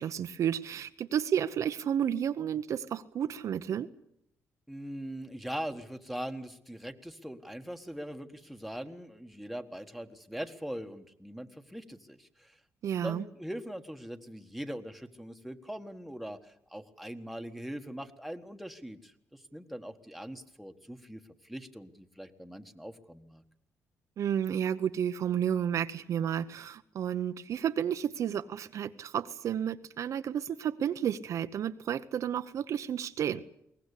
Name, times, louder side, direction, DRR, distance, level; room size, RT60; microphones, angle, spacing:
voice 1, 0.0-3.9 12.8-13.2 24.2-33.4, right 9 dB, 65° right, 10 dB, 0.8 m, -31 dB
voice 2, 4.7-12.6 13.0-23.4, equal, ahead, 5 dB, 1.5 m, -41 dB
22.5 x 18.5 x 8.4 m, 0.76 s
cardioid pair, 105°, 6 cm